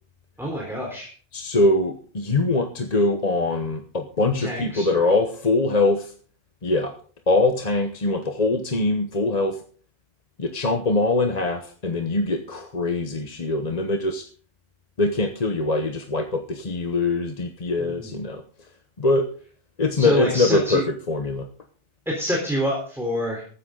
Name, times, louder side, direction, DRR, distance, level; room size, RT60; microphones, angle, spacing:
voice 1, 0.4-1.1 4.4-5.0 17.8-18.1 20.0-20.8 22.1-23.4, equal, ahead, -2 dB, 3.8 m, -27 dB
voice 2, 1.3-6.1 6.6-7.0 7.3-9.6 10.4-14.3 15.0-18.4 19.0-19.3 19.8-21.5, left 2 dB, 40° left, 6 dB, 1.1 m, -23 dB
15.0 x 12.5 x 3.9 m, 0.43 s
omnidirectional pair, 1.0 m